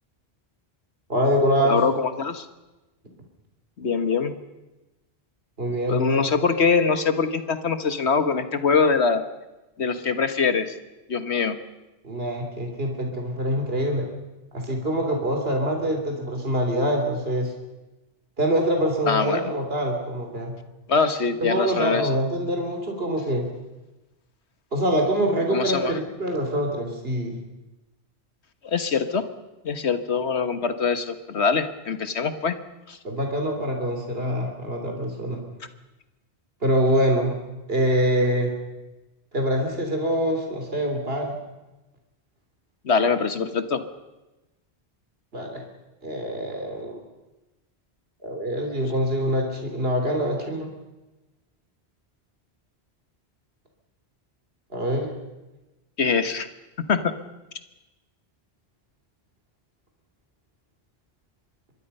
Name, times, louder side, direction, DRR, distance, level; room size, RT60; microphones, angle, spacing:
voice 1, 1.1-1.8 5.6-6.3 12.0-14.1 14.5-17.5 18.4-20.5 21.4-23.5 24.7-27.4 33.0-35.4 36.6-37.4 37.7-38.5 39.3-41.4 45.3-45.6 46.0-47.0 48.2-50.7 54.7-55.2, equal, 65° right, 3 dB, 3.4 m, -25 dB
voice 2, 1.6-2.5 3.8-4.3 5.9-9.2 9.8-10.7 11.1-11.6 19.1-19.5 20.9-22.1 25.5-26.0 28.6-29.2 29.6-32.6 32.9-33.0 42.8-43.8 56.0-56.5 56.9-57.1, left 5 dB, 90° left, 10 dB, 1.7 m, -23 dB
25.5 x 22.0 x 5.5 m, 1.1 s
omnidirectional pair, 1.1 m